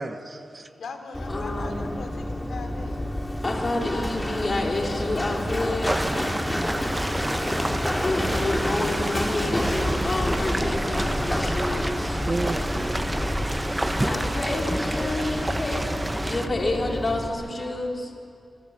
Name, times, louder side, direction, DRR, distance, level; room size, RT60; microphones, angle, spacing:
voice 1, 0.0-0.7 9.6-9.7 12.3-13.9, right 2 dB, 35° right, 9 dB, 1.2 m, -34 dB
voice 2, 0.8-3.1, left 4 dB, 85° left, 5 dB, 3.0 m, -39 dB
Run, 1.1-17.3, left 1 dB, 15° left, 2.9 m, -29 dB
voice 3, 1.3-2.0 3.4-6.4 8.0-12.2 14.0-18.1, left 2 dB, 35° left, 0 dB, 4.0 m, -29 dB
sound 1, 5.8-16.5, right 1 dB, 15° right, 0.9 m, -30 dB
25.5 x 25.0 x 7.6 m, 2.4 s
wide cardioid pair, 85°, 0 cm